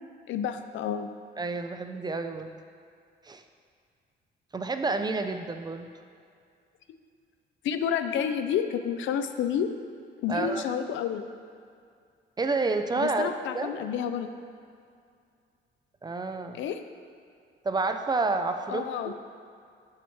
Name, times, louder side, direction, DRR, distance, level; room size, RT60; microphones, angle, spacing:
voice 1, 0.3-1.1 7.6-9.7 10.2-11.2 13.0-14.3 16.6-16.8 18.7-19.1, left 8 dB, 75° left, 9 dB, 0.4 m, -29 dB
voice 2, 1.4-2.5 3.2-3.4 4.5-5.9 10.3-10.6 12.4-13.7 16.0-16.6 17.6-19.1, right 3 dB, 20° right, 7 dB, 0.3 m, -29 dB
7.2 x 3.0 x 5.7 m, 2.3 s
cardioid pair, 90°, 20 cm